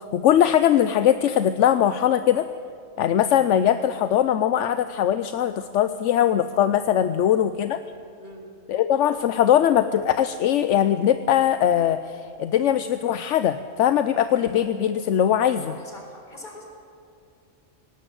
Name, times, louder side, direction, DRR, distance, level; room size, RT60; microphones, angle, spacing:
voice 1, 0.1-2.5 3.0-7.8 8.7-15.7, left 10 dB, 75° left, 11 dB, 1.0 m, -21 dB
voice 2, 15.7-16.7, left 1 dB, 40° left, 1 dB, 4.3 m, -44 dB
18.5 x 18.5 x 7.9 m, 2.6 s
omnidirectional pair, 1.3 m